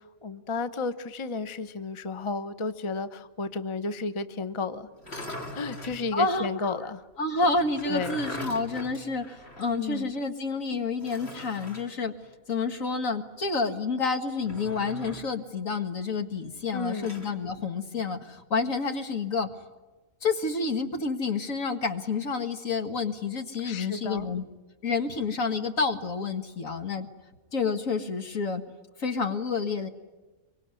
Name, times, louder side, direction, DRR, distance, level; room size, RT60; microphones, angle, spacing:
voice 1, 0.0-5.2 5.5-7.1 7.9-8.2 9.7-10.1 16.7-17.1 23.6-24.3, left 4 dB, 25° left, 12 dB, 0.9 m, -33 dB
sound 1, 4.9-6.0 7.5-9.8 10.1-10.2 11.0-11.9 14.4-15.4 16.7-17.3, equal, 50° left, 2.7 m, -41 dB
voice 2, 6.1-6.7 7.2-12.1 12.5-19.5 20.2-24.4 24.8-27.1 27.5-28.6 29.0-29.9, left 4 dB, 75° left, 6 dB, 2.1 m, -29 dB
24.5 x 24.0 x 9.7 m, 1.2 s
omnidirectional pair, 1.4 m